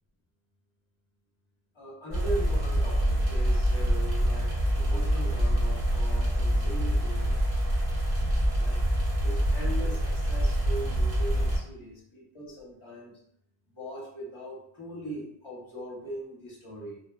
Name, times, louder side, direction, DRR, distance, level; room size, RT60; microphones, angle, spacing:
voice 1, 1.7-7.8 8.6-8.8 9.2-13.2 13.7-17.0, right 1 dB, 35° left, -4 dB, 0.6 m, -40 dB
sound 1, 2.1-11.6, equal, 60° right, 1.0 m, -26 dB
2.6 x 2.1 x 2.3 m, 0.71 s
omnidirectional pair, 1.1 m